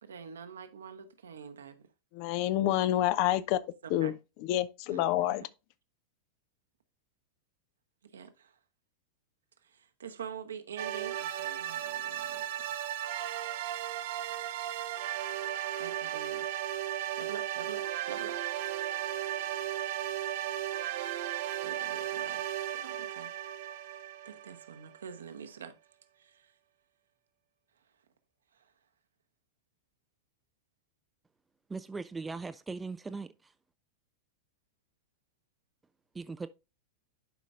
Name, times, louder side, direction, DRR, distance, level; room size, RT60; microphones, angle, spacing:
voice 1, 0.0-1.8 3.8-4.1 4.9-5.3 8.1-8.6 9.6-12.8 15.8-16.4 16.9-18.4 21.6-23.3 24.2-25.7 26.2-26.5 28.5-28.7, right 7 dB, 70° right, 1.0 m, -46 dB
voice 2, 2.1-3.6 3.9-5.4, left 13 dB, 45° left, 0.5 m, -28 dB
sound 1, 10.8-25.0, right 12 dB, 50° right, 0.6 m, -35 dB
voice 3, 31.7-33.5 36.1-36.5, right 4 dB, 10° right, 0.3 m, -39 dB
11.0 x 5.1 x 2.4 m
figure-of-eight pair, 90°, 0 cm